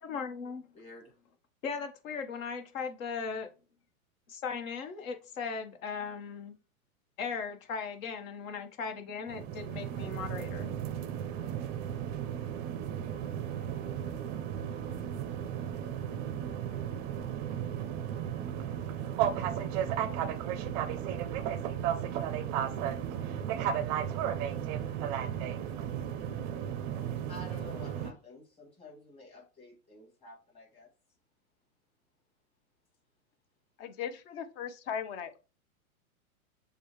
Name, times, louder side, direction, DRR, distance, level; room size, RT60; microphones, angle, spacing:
voice 1, 0.0-0.6 1.6-3.5 4.3-6.6 7.2-10.7, left 5 dB, 65° left, 1.3 m, -38 dB
voice 2, 0.7-1.1 27.3-30.9, left 1 dB, 15° left, 2.5 m, -50 dB
sound 1, 9.3-28.1, right 9 dB, 30° right, 0.5 m, -34 dB
voice 3, 33.8-35.4, left 8 dB, 40° left, 0.8 m, -38 dB
6.8 x 2.4 x 3.1 m
hypercardioid pair, 125°, 43 cm